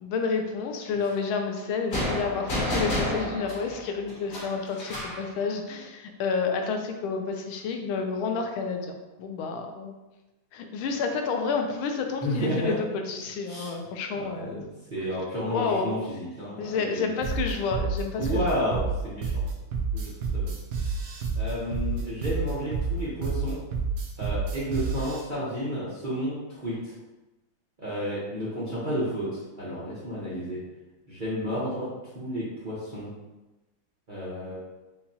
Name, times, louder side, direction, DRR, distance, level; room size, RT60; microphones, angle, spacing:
voice 1, 0.0-9.9 10.5-14.7 15.5-15.9 16.6-18.6, left 5 dB, 85° left, 4 dB, 1.4 m, -30 dB
sound 1, 1.9-5.3, left 1 dB, 70° left, 2.3 m, -30 dB
voice 2, 12.2-12.7 13.5-13.7 14.1-17.2 18.2-19.4 19.9-20.5 20.8-21.0 21.3-23.6 24.2-26.9 27.8-30.6 31.1-31.9 32.1-33.1 34.1-34.6, equal, 45° right, -10 dB, 0.6 m, -31 dB
sound 2, 17.2-25.2, right 4 dB, 80° right, 1.4 m, -29 dB
5.6 x 2.3 x 2.7 m, 1.1 s
omnidirectional pair, 2.2 m